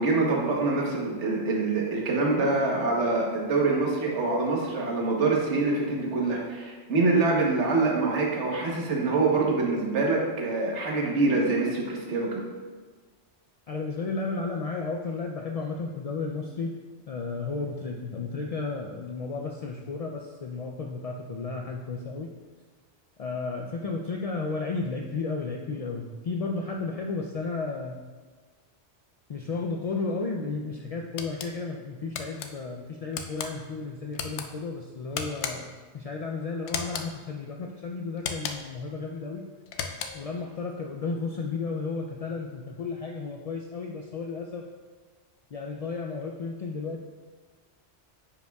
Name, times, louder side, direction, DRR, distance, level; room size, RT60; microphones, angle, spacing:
voice 1, 0.0-12.4, right 3 dB, 75° right, -2 dB, 1.4 m, -25 dB
voice 2, 13.7-16.7 17.1-22.3 23.2-28.0 29.3-39.4 40.1-44.7 45.5-47.0, left 4 dB, 65° left, 1 dB, 0.3 m, -33 dB
sound 1, 31.2-31.5 32.1-32.5 33.1-33.5 34.1-34.5 35.1-35.8 36.7-37.1 38.2-38.8 39.7-40.3, left 6 dB, 80° left, 0.9 m, -35 dB
9.7 x 5.3 x 2.3 m, 1.4 s
omnidirectional pair, 1.2 m